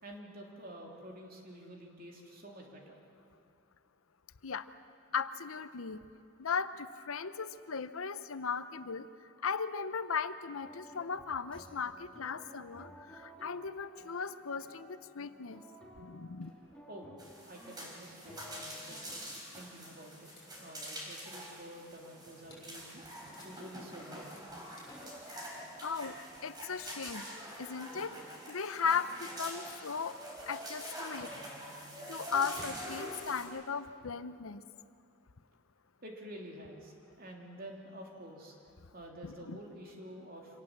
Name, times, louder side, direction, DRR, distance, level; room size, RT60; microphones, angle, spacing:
voice 1, 0.0-3.0 16.9-17.1 17.4-19.1 19.5-20.3 20.6-23.0 23.4-24.4 36.0-38.6 38.9-40.6, right 1 dB, 45° right, 0 dB, 3.1 m, -49 dB
voice 2, 5.1-6.0 6.4-9.1 9.4-15.6 16.0-16.5 25.3-25.4 25.8-26.1 26.4-27.2 27.6-28.1 28.5-30.2 30.5-31.3 32.1-34.6 39.2-39.6, left 6 dB, 90° left, 13 dB, 0.8 m, -37 dB
sound 1, 10.6-19.1, equal, 5° left, 3.0 m, -55 dB
sound 2, 17.2-33.4, equal, 20° right, 4.0 m, -45 dB
sound 3, 18.2-32.9, left 1 dB, 20° left, 7.9 m, -59 dB
26.0 x 18.5 x 7.4 m, 2.4 s
head